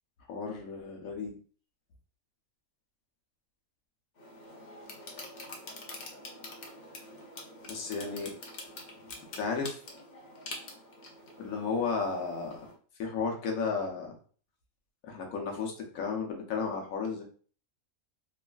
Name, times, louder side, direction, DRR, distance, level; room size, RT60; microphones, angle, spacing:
voice 1, 0.3-1.4 7.7-8.3 9.4-9.8 11.4-12.7 13.0-14.1 15.0-17.3, left 5 dB, 85° left, 2 dB, 1.1 m, -33 dB
sound 1, 4.2-12.8, left 2 dB, 55° left, 0.5 m, -46 dB
3.1 x 2.4 x 2.2 m, 0.42 s
omnidirectional pair, 1.4 m